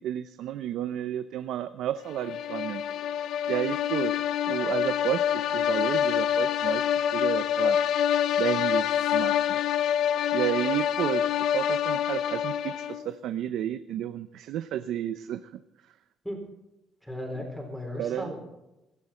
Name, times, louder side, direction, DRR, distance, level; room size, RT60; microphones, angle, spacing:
voice 1, 0.0-2.8 3.5-4.1 4.5-7.8 8.4-8.9 9.1-9.6 10.3-15.6 18.0-18.3, right 11 dB, 75° right, 10 dB, 0.6 m, -31 dB
sound 1, 2.1-13.1, left 9 dB, 70° left, 0.6 m, -26 dB
voice 2, 17.0-18.4, left 1 dB, 5° left, 2 dB, 4.1 m, -36 dB
17.0 x 13.5 x 4.4 m, 0.94 s
cardioid pair, 150°, 0 cm